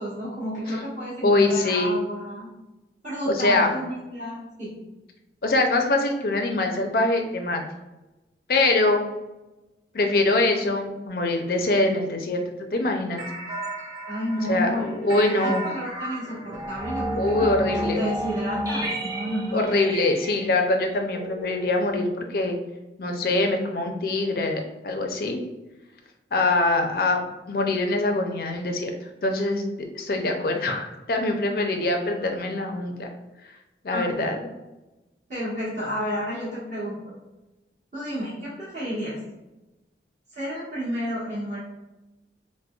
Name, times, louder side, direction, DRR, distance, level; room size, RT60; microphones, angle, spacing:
voice 1, 0.0-2.5 3.0-4.7 14.1-19.6 33.9-34.4 35.3-37.0 37.9-39.2 40.3-41.6, equal, 45° right, -10 dB, 1.1 m, -31 dB
voice 2, 1.2-2.0 3.3-3.7 5.4-7.6 8.5-9.0 9.9-12.4 12.7-13.3 14.4-15.6 17.1-18.0 19.5-22.6 23.0-25.4 26.3-28.9 29.2-29.7 29.9-33.1 33.8-34.4, left 2 dB, 55° left, 4 dB, 0.4 m, -23 dB
sound 1, 13.2-22.1, equal, 20° right, 0.6 m, -33 dB
5.0 x 2.1 x 2.3 m, 1.0 s
head